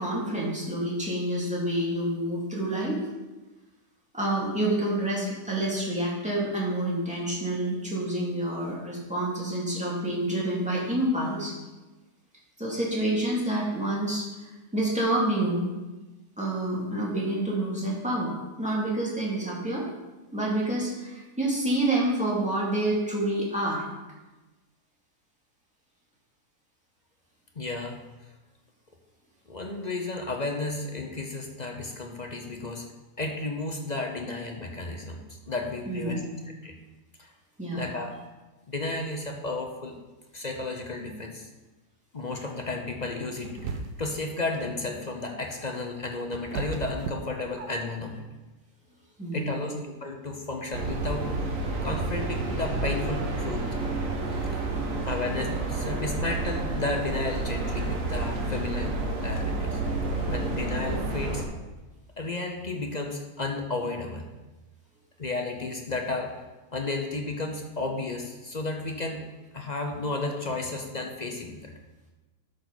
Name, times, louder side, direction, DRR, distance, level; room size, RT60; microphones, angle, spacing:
voice 1, 0.0-3.0 4.1-11.5 12.6-14.3 14.7-15.7 16.4-18.3 18.6-19.9 20.3-23.8 35.9-36.3 37.6-37.9 49.2-49.8, right 1 dB, 5° right, -5 dB, 2.4 m, -28 dB
voice 2, 27.6-28.1 29.5-32.9 33.2-36.3 36.6-36.8 37.2-37.3 37.7-38.1 38.7-40.0 40.3-41.5 42.1-48.2 49.3-51.3 51.8-53.6 54.5-54.6 55.1-59.8 60.3-61.4 62.2-64.3 65.2-66.3 66.7-71.7, left 2 dB, 35° left, 2 dB, 0.7 m, -33 dB
sound 1, 43.4-44.2 45.7-48.0, right 4 dB, 85° right, 1.4 m, -35 dB
sound 2, 50.7-61.4, right 2 dB, 55° right, 1.5 m, -30 dB
11.5 x 6.6 x 4.1 m, 1.1 s
omnidirectional pair, 1.7 m